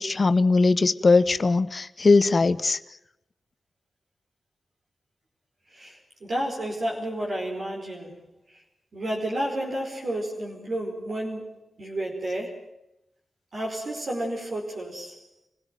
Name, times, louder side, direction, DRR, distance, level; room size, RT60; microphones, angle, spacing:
voice 1, 0.0-2.8, left 3 dB, 45° left, 13 dB, 1.0 m, -20 dB
voice 2, 5.7-8.2 8.5-8.6 8.9-12.6 13.5-15.2, right 1 dB, 60° right, -2 dB, 4.9 m, -31 dB
26.5 x 16.0 x 9.3 m, 0.83 s
cardioid pair, 60°, 0 cm